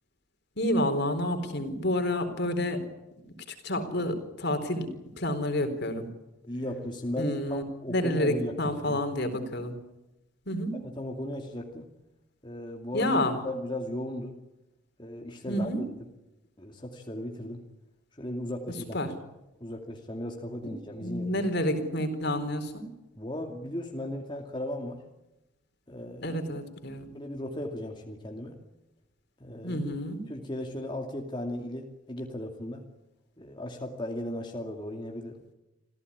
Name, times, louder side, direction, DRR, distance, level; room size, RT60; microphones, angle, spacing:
voice 1, 0.6-2.8 3.5-4.9 5.2-6.1 7.2-7.6 7.9-9.7 10.5-10.8 12.9-13.4 15.5-15.8 18.9-19.1 21.0-22.8 26.2-27.1 29.6-30.2, left 1 dB, 55° left, 8 dB, 4.2 m, -29 dB
voice 2, 6.5-9.0 10.8-11.9 12.4-13.2 13.4-14.4 15.0-15.9 16.6-17.6 18.2-19.0 19.6-21.5 23.2-25.0 25.9-26.4 27.1-28.6 29.4-29.8 30.3-32.8 33.4-35.4, left 1 dB, 25° left, 2 dB, 2.5 m, -36 dB
27.0 x 16.5 x 9.9 m, 0.96 s
head